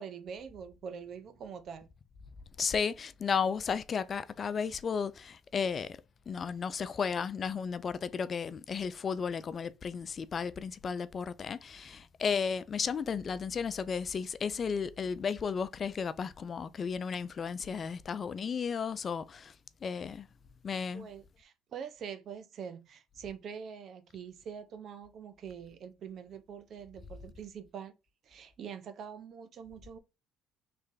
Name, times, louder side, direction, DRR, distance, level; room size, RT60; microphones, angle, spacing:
voice 1, 0.0-1.9 20.9-27.9 28.2-30.0, right 7 dB, 55° right, 0.7 m, -44 dB
voice 2, 2.6-6.0 6.3-19.5 19.8-20.3 20.6-21.1, left 6 dB, 40° left, 0.4 m, -34 dB
3.3 x 3.2 x 3.7 m
cardioid pair, 100°, 0 cm